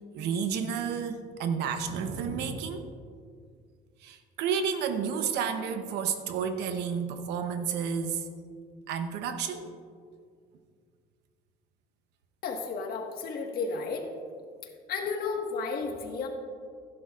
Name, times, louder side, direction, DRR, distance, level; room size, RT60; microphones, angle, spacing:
voice 1, 0.1-2.8 4.0-8.3 8.9-9.7, right 6 dB, 85° right, 8 dB, 0.9 m, -31 dB
voice 2, 12.4-14.1 14.9-16.3, left 4 dB, 65° left, 2 dB, 1.7 m, -32 dB
16.0 x 11.0 x 2.5 m, 2.1 s
cardioid pair, 110°, 17 cm